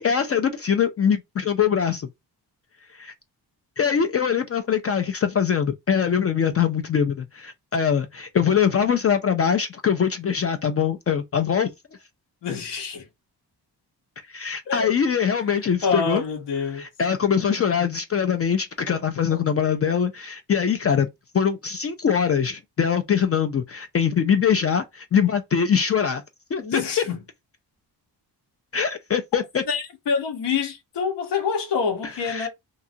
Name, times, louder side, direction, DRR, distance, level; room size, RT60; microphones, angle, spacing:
voice 1, 0.0-2.1 2.9-3.1 3.8-11.7 14.3-16.2 16.7-21.1 21.3-26.2 26.5-26.8 28.7-29.6 32.0-32.5, left 7 dB, 35° left, 0.4 m, -23 dB
voice 2, 12.4-13.1 14.7-14.9 15.8-16.8 26.6-27.2 29.7-32.5, left 6 dB, 80° left, 1.1 m, -26 dB
2.8 x 2.3 x 2.6 m
cardioid pair, 85°, 41 cm